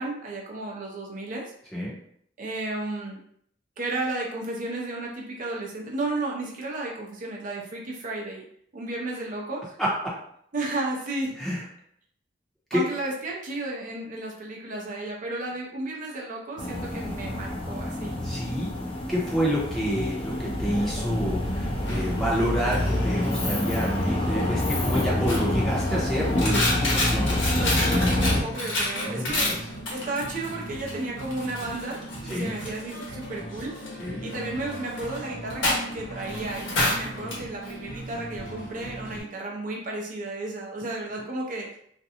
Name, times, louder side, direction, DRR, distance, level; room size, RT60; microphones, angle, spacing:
voice 1, 0.0-1.5 2.4-3.2 3.8-8.4 8.7-9.7 10.5-11.3 12.7-18.2 27.5-29.5 29.9-33.7 34.2-41.7, right 2 dB, 45° right, -1 dB, 0.6 m, -33 dB
voice 2, 9.8-10.1 11.4-11.6 12.7-12.8 18.2-18.7 19.1-27.4 29.1-29.6 32.3-32.5 34.0-34.2, equal, ahead, -6 dB, 0.7 m, -28 dB
sound 1, 16.6-28.4, left 1 dB, 30° left, 0.4 m, -27 dB
Coin (dropping), 21.4-39.2, left 1 dB, 70° left, 0.9 m, -31 dB
2.5 x 2.2 x 2.8 m, 0.66 s
head